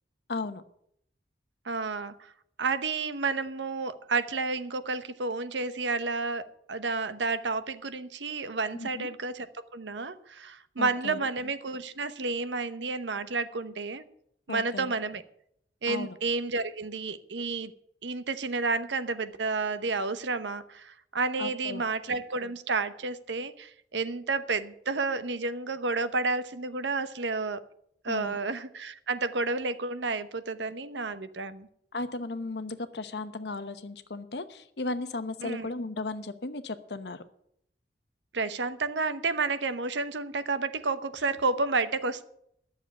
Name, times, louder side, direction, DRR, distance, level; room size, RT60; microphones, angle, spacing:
voice 1, 0.3-0.6 8.7-9.1 10.8-11.2 14.5-14.9 15.9-16.2 21.4-21.8 28.1-28.4 31.9-37.2, left 3 dB, 70° left, 11 dB, 0.9 m, -35 dB
voice 2, 1.6-2.1 2.6-9.5 9.7-14.0 14.5-15.2 15.8-17.7 18.0-27.6 28.0-31.7 35.4-35.7 38.3-42.2, right 3 dB, 85° right, 12 dB, 0.9 m, -31 dB
11.0 x 7.1 x 9.5 m, 0.72 s
head